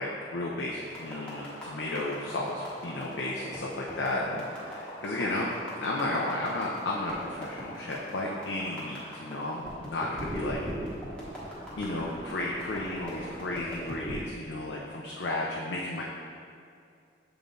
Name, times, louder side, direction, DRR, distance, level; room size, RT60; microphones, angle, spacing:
voice 1, 0.0-5.5 5.8-10.6 11.8-16.0, left 2 dB, 85° left, -3 dB, 0.6 m, -33 dB
sound 1, 0.8-14.2, equal, 5° left, 1.3 m, -40 dB
7.0 x 3.9 x 3.8 m, 2.4 s
head